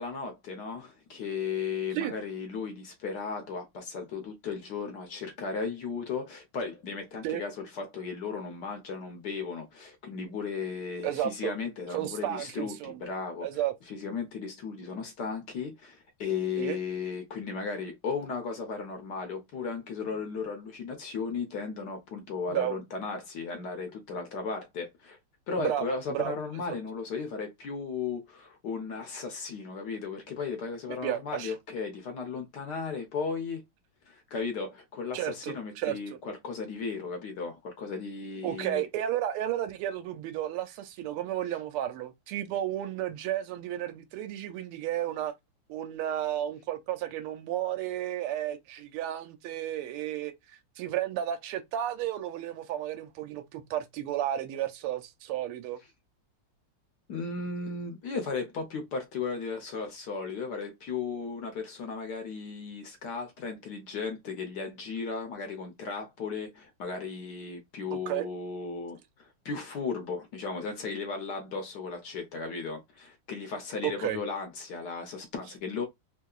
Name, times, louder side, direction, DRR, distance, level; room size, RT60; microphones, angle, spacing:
voice 1, 0.0-13.5 13.9-25.2 25.5-33.6 34.1-38.8 57.1-75.8, left 5 dB, 65° left, 1.2 m, -35 dB
voice 2, 11.0-11.6 11.9-13.1 13.4-13.7 16.6-16.8 22.5-22.8 25.6-26.3 26.7-26.8 31.0-31.5 35.1-36.2 38.4-45.3 45.7-55.8 67.9-68.3 73.8-74.2, right 12 dB, 85° right, 1.5 m, -33 dB
3.5 x 2.7 x 2.3 m
omnidirectional pair, 2.4 m